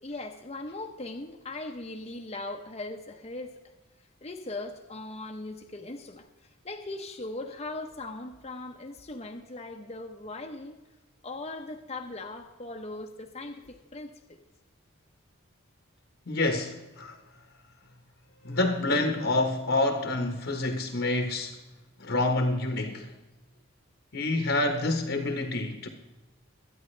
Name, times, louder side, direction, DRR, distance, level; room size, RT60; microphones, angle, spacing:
voice 1, 0.0-3.5 4.2-6.3 6.6-10.8 11.2-14.4, left 2 dB, 30° left, 0.8 m, -39 dB
voice 2, 16.3-17.2 18.4-21.6 22.0-23.1 24.1-25.9, left 2 dB, 60° left, 1.2 m, -27 dB
22.5 x 9.5 x 3.3 m
head